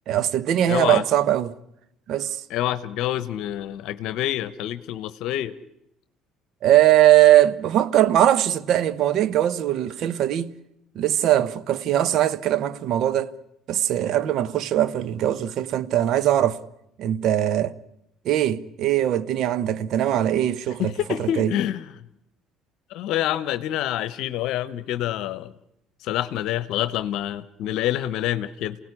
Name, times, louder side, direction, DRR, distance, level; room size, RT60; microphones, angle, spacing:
voice 1, 0.1-1.5 2.1-2.4 6.6-10.5 10.9-13.3 13.7-16.6 17.0-17.8 18.2-20.9 21.2-21.5, right 12 dB, 60° right, 1.0 m, -20 dB
voice 2, 0.7-1.0 2.5-5.5 20.8-21.8 22.9-25.5 26.0-28.8, left 12 dB, 70° left, 0.9 m, -27 dB
27.5 x 17.5 x 9.8 m
hypercardioid pair, 65°, 0 cm